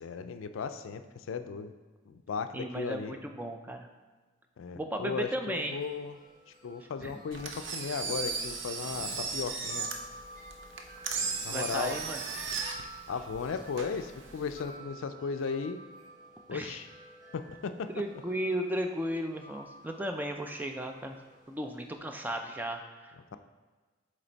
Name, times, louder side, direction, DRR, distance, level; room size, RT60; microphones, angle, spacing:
voice 1, 0.0-1.0 1.3-1.7 2.1-3.1 4.6-6.2 6.6-9.9 11.4-12.0 13.1-15.8 16.5-16.9 17.3-17.9, left 5 dB, 75° left, 9 dB, 0.4 m, -36 dB
voice 2, 2.5-3.9 4.7-5.8 6.8-7.1 11.5-12.2 16.5-16.8 17.9-21.2 21.5-23.4, right 1 dB, 10° right, 4 dB, 0.3 m, -35 dB
Wind chime, 5.5-22.0, right 1 dB, 40° right, 1.1 m, -52 dB
Engine, 7.3-14.6, right 4 dB, 65° right, 0.6 m, -36 dB
7.5 x 3.3 x 4.0 m, 1.4 s
head